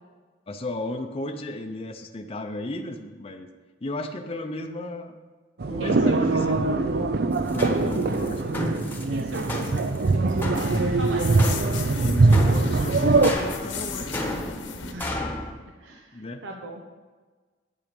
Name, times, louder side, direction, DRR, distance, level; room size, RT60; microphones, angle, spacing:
voice 1, 0.5-3.5 3.8-5.1 5.7-7.1 7.5-8.9 12.0-14.2 15.5-16.4, left 1 dB, 30° left, 4 dB, 0.6 m, -34 dB
sound 1, 5.6-13.3, right 3 dB, 55° right, 0.5 m, -22 dB
voice 2, 5.8-6.6 9.1-11.4 14.9-15.4 15.8-16.8, right 1 dB, 85° right, 2 dB, 1.0 m, -37 dB
sound 2, 7.3-15.5, left 1 dB, 10° left, 1.2 m, -34 dB
sound 3, 9.2-14.9, left 4 dB, 75° left, 1.2 m, -36 dB
9.1 x 8.7 x 5.3 m, 1.4 s
head